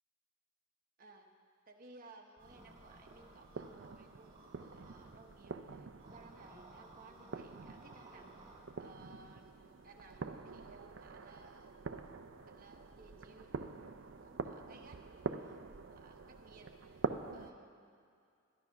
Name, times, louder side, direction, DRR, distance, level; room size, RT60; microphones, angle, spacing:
voice 1, 1.0-1.3 1.7-11.7 12.5-13.6 14.0-18.1, right 3 dB, 45° right, 2 dB, 1.1 m, -60 dB
sound 1, 2.4-5.1 6.0-8.6, right 2 dB, 25° right, 2.3 m, -58 dB
sound 2, 2.4-17.5, right 4 dB, 65° right, 0.5 m, -46 dB
12.0 x 11.0 x 5.8 m, 2.2 s
head